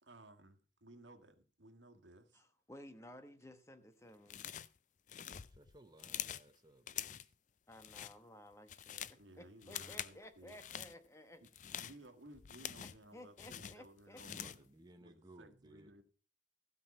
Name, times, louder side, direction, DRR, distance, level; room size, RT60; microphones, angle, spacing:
voice 1, 0.0-2.4 7.9-8.1 9.1-10.6 11.4-11.5 11.8-14.7 15.0-16.0, right 1 dB, 80° right, 1.8 m, -59 dB
voice 2, 2.3-4.4 7.7-11.4 13.1-14.2, left 1 dB, 15° left, 1.1 m, -56 dB
sound 1, 4.3-4.8 5.1-6.5 6.9-7.3 7.7-8.2 8.5-9.2 9.6-10.2 10.5-10.9 11.4-13.1 13.4-14.7, left 10 dB, 40° left, 0.5 m, -45 dB
voice 3, 5.5-7.1 14.2-15.9, right 1 dB, 20° right, 0.9 m, -61 dB
15.5 x 5.5 x 7.0 m
head